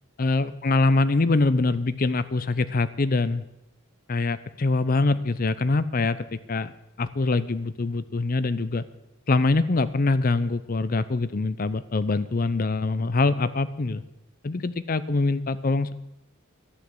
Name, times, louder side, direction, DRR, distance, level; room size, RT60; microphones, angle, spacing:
voice 1, 0.2-3.4 4.1-6.7 7.0-8.8 9.3-14.0 14.4-15.9, left 3 dB, 40° left, 15 dB, 0.6 m, -24 dB
12.0 x 9.7 x 7.8 m, 0.92 s
head